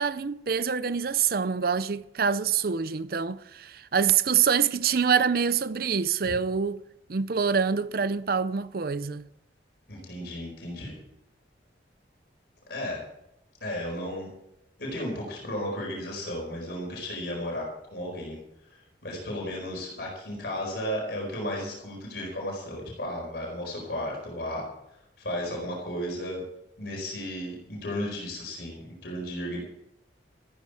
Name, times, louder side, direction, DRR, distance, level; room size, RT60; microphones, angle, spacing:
voice 1, 0.0-6.8 7.1-9.3, right 6 dB, 55° right, 0.6 m, -25 dB
voice 2, 9.9-10.9 12.7-13.0 13.6-14.3 14.8-18.4 18.7-24.6 25.2-26.4 26.8-29.6, left 1 dB, 65° left, 4.6 m, -34 dB
14.0 x 13.5 x 4.9 m
head